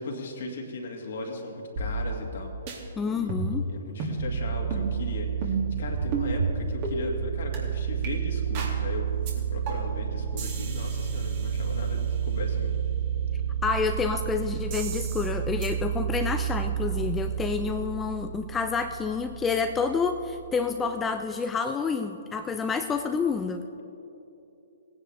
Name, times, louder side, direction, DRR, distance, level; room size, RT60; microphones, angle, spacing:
voice 1, 0.0-12.7, left 3 dB, 60° left, 1 dB, 1.9 m, -38 dB
sound 1, 1.8-2.4 2.7-2.8 3.3-3.6 4.0-4.2 4.7-4.9 5.4-5.7 6.1-6.3 6.8-7.0 7.5-7.6 8.0-8.1 8.5-8.8 9.3-9.4 9.7-10.0 10.4-12.2 14.7-15.3 15.6-15.7, right 4 dB, 40° right, 2.2 m, -33 dB
voice 2, 3.0-3.7 13.6-23.6, left 5 dB, 15° left, 7 dB, 0.4 m, -28 dB
sound 2, 4.2-20.8, right 7 dB, 75° right, 1.2 m, -30 dB
18.0 x 9.6 x 3.3 m, 2.9 s
hypercardioid pair, 130°, 0 cm